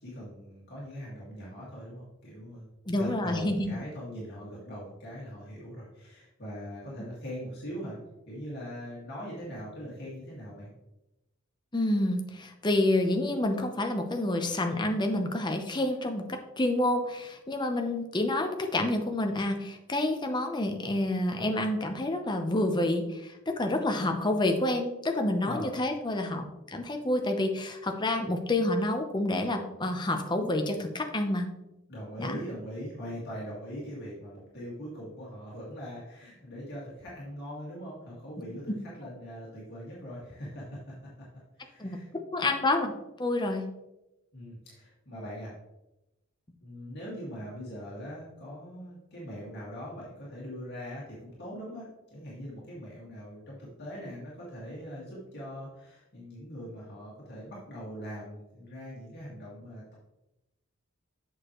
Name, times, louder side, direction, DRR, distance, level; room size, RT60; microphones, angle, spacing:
voice 1, 0.0-8.0 8.3-10.7 25.4-25.7 31.9-40.9 41.6-42.1 44.3-45.5 46.6-59.9, equal, 50° left, -6 dB, 1.9 m, -41 dB
voice 2, 2.9-3.7 11.7-26.4 26.7-31.5 32.2-32.4 41.8-42.0 42.3-42.9 43.2-43.7, left 1 dB, 20° left, 4 dB, 0.7 m, -28 dB
7.3 x 6.4 x 3.0 m, 0.95 s
head